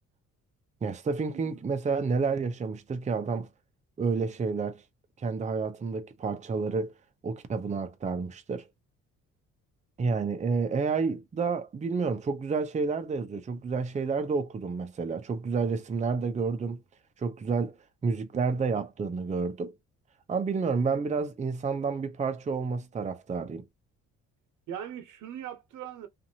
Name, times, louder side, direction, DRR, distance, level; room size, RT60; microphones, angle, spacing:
voice 1, 0.8-3.5 4.0-4.8 5.2-6.9 7.2-8.7 10.0-16.8 17.2-17.8 18.0-19.7 20.3-23.6, right 4 dB, 25° right, 0.5 m, -30 dB
voice 2, 1.3-1.7 24.7-26.1, right 9 dB, 80° right, 0.9 m, -40 dB
2.6 x 2.5 x 2.8 m
cardioid pair, 90°, 30 cm